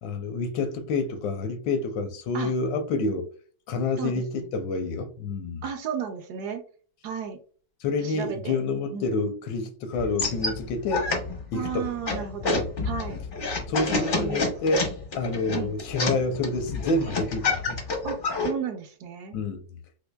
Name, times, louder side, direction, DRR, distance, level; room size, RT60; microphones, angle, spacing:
voice 1, 0.0-3.3 3.7-5.6 7.8-11.1 11.5-11.9 12.4-12.7 13.7-17.8 19.3-19.6, left 3 dB, 80° left, 1.3 m, -28 dB
voice 2, 4.0-4.5 5.6-6.6 7.0-7.4 8.0-8.6 8.9-9.1 11.5-13.2 13.9-14.5 15.5-15.7 18.0-19.4, right 8 dB, 70° right, 1.0 m, -34 dB
sound 1, 10.0-18.5, left 3 dB, 55° left, 0.5 m, -29 dB
4.3 x 2.4 x 2.2 m
omnidirectional pair, 2.0 m